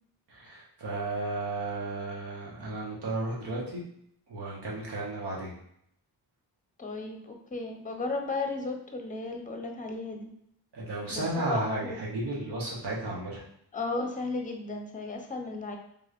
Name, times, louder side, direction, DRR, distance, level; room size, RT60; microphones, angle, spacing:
voice 1, 0.3-3.8 4.3-5.5 10.7-13.4, right 2 dB, 75° right, -5 dB, 1.4 m, -33 dB
voice 2, 6.8-10.3 11.1-12.0 13.7-15.8, left 3 dB, 20° left, 3 dB, 0.7 m, -35 dB
3.6 x 3.2 x 2.5 m, 0.70 s
cardioid pair, 60°, 41 cm